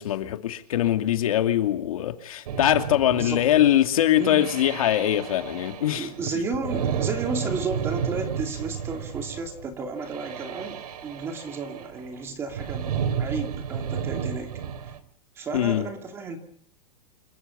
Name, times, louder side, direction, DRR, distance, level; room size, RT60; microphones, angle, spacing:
voice 1, 0.0-6.1 15.5-15.8, left 12 dB, 65° left, 2.6 m, -22 dB
sound 1, 2.5-15.0, right 7 dB, 80° right, 3.7 m, -32 dB
voice 2, 3.1-3.5 4.2-4.4 5.9-14.5 14.8-14.9 15.4-16.4, right 4 dB, 15° right, 2.5 m, -33 dB
27.5 x 15.0 x 9.8 m
supercardioid pair, 180°, 20 cm